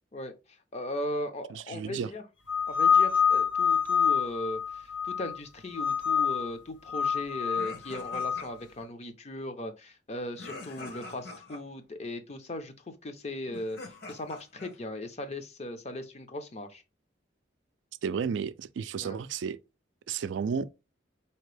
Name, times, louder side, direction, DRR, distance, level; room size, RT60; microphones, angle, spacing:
voice 1, 0.1-2.2 2.7-16.8 19.0-19.2, left 1 dB, 35° left, 0.6 m, -38 dB
voice 2, 1.5-2.1 18.0-19.6 20.1-20.7, right 6 dB, 80° right, 0.3 m, -32 dB
sound 1, 2.5-5.4 5.8-6.5 6.9-8.4, left 7 dB, 90° left, 0.8 m, -26 dB
sound 2, 7.6-8.8 10.4-11.6 13.5-14.8, left 2 dB, 55° left, 1.0 m, -44 dB
4.4 x 2.8 x 3.2 m
head